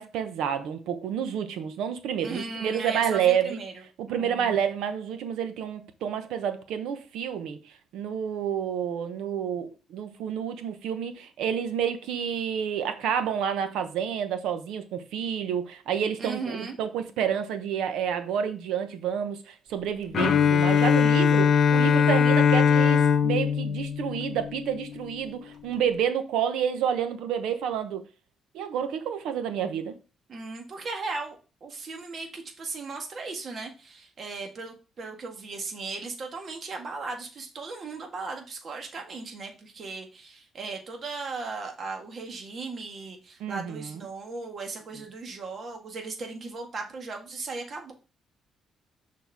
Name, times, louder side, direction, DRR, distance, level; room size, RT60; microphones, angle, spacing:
voice 1, 0.0-3.6 4.0-28.0 28.5-30.0 43.4-44.0, right 8 dB, 85° right, 0.9 m, -29 dB
voice 2, 2.2-4.6 16.2-16.8 30.3-47.9, right 3 dB, 50° right, 1.7 m, -37 dB
Bowed string instrument, 20.1-25.0, left 7 dB, 60° left, 0.6 m, -21 dB
6.4 x 4.3 x 3.5 m
cardioid pair, 90°, 0 cm